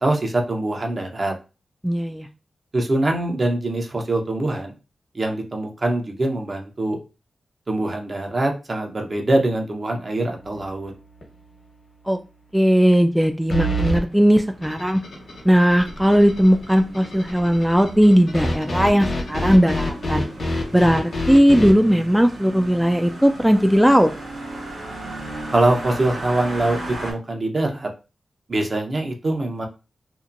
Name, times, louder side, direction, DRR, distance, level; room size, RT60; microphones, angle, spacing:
voice 1, 0.0-1.3 2.7-4.7 5.1-7.0 7.7-10.9 25.5-27.9 28.5-29.7, right 2 dB, 50° right, 2 dB, 0.7 m, -23 dB
voice 2, 1.8-2.3 12.1-12.2 12.5-15.0 15.4-20.2 20.7-24.1, equal, 5° right, 6 dB, 0.3 m, -17 dB
sound 1, 10.4-10.9 11.2-11.3 13.5-14.0 18.3-21.8, equal, 65° left, 1.1 m, -25 dB
sound 2, 14.1-27.1, right 1 dB, 80° right, 1.0 m, -36 dB
sound 3, 14.6-20.6, left 3 dB, 85° left, 0.7 m, -43 dB
2.8 x 2.1 x 2.5 m, 0.30 s
cardioid pair, 40°, 0 cm